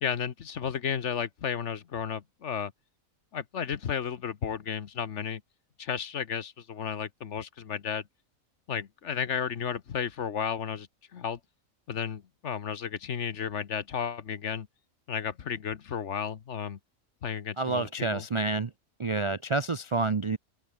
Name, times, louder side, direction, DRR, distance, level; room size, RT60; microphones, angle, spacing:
voice 1, 0.0-2.7 3.3-5.4 5.8-8.0 8.7-11.4 11.9-14.7 15.1-16.8 17.2-18.2, left 7 dB, 60° left, 1.3 m, -33 dB
voice 2, 17.6-18.7 19.0-20.4, right 3 dB, 40° right, 0.4 m, -28 dB
omnidirectional pair, 1.4 m